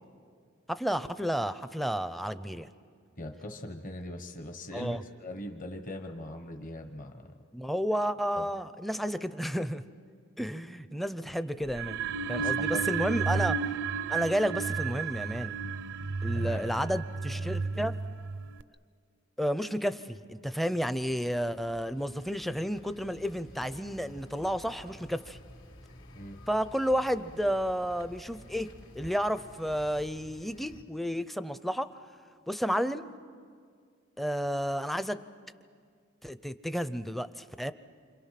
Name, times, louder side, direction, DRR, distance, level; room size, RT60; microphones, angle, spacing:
voice 1, 0.7-2.7 4.7-5.0 7.5-9.8 10.4-12.0 12.3-13.6 14.1-15.6 16.2-18.0 19.4-25.4 26.5-28.7 28.9-31.9 32.5-33.1 34.2-35.2 36.2-37.7, equal, ahead, 12 dB, 0.5 m, -31 dB
voice 2, 3.2-7.2 8.4-8.5 12.4-12.9 13.1-13.5 16.3-16.7 17.3-17.5 26.1-26.4, left 1 dB, 45° left, 5 dB, 1.2 m, -41 dB
sound 1, 11.7-18.6, right 5 dB, 65° right, 0.5 m, -32 dB
sound 2, 20.7-30.8, left 1 dB, 75° left, 3.1 m, -52 dB
28.5 x 26.0 x 5.8 m, 2.1 s
head